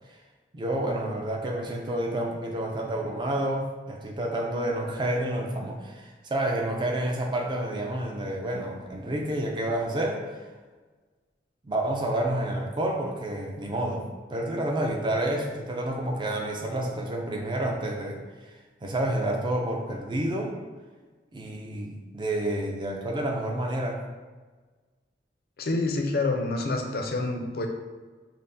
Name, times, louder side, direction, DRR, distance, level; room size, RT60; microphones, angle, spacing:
voice 1, 0.5-10.5 11.6-14.0 14.3-18.5 18.8-20.5 21.3-24.0, right 1 dB, 25° right, 1 dB, 0.4 m, -29 dB
voice 2, 25.6-27.7, left 2 dB, 55° left, 3 dB, 0.4 m, -27 dB
5.5 x 2.0 x 2.7 m, 1.4 s
head